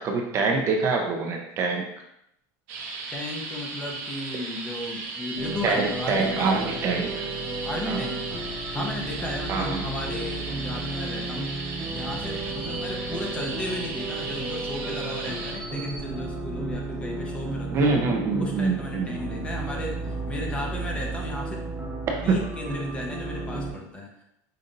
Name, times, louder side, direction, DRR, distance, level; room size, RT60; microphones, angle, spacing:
voice 1, 0.0-1.8 5.6-7.2 7.9-8.0 9.5-9.8 17.7-19.2 22.1-22.4, right 4 dB, 35° right, 1 dB, 0.6 m, -25 dB
sound 1, 2.7-16.1 16.7-16.8, right 3 dB, 60° right, 0.9 m, -36 dB
voice 2, 3.1-6.8 7.6-8.3 8.7-11.5 11.9-17.9 18.4-21.6 22.2-24.2, left 1 dB, 15° left, 0 dB, 0.6 m, -35 dB
sound 2, 5.4-23.7, right 2 dB, 10° right, 0.9 m, -33 dB
5.2 x 2.7 x 2.5 m, 0.78 s
supercardioid pair, 145°, 8 cm